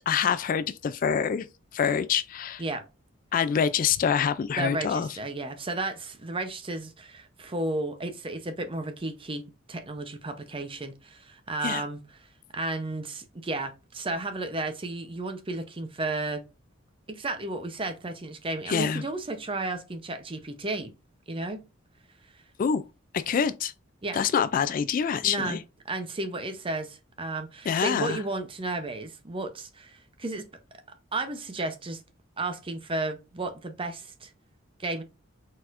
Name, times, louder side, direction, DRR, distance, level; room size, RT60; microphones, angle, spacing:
voice 1, 0.1-1.5 1.7-2.6 3.3-5.1 11.6-11.8 18.7-19.0 22.6-22.8 23.1-23.7 24.1-25.6 27.7-28.2, left 7 dB, 40° left, 0.3 m, -26 dB
voice 2, 4.6-12.0 12.5-16.4 17.1-20.9 21.3-21.6 22.3-22.4 24.0-24.2 25.2-25.6 25.8-30.5 31.1-32.0 32.4-34.3 34.8-35.0, right 2 dB, 25° right, 0.7 m, -33 dB
4.2 x 4.2 x 2.5 m
head